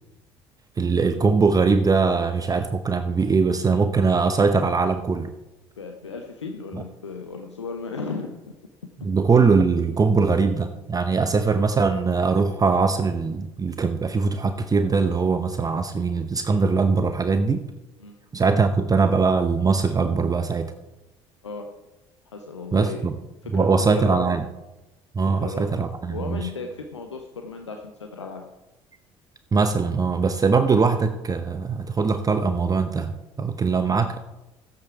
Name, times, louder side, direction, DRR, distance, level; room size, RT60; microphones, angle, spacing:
voice 1, 0.8-5.3 6.7-6.8 9.0-17.7 18.3-20.7 22.7-23.2 23.5-24.5 25.1-26.5 29.5-34.2, right 4 dB, 25° right, 9 dB, 0.8 m, -21 dB
voice 2, 5.8-8.4 18.0-18.1 21.4-21.7 22.3-23.0 23.4-24.3 25.4-25.7 26.1-28.5, left 4 dB, 90° left, 4 dB, 0.8 m, -35 dB
15.5 x 8.6 x 4.7 m, 1.0 s
figure-of-eight pair, 55°, 14 cm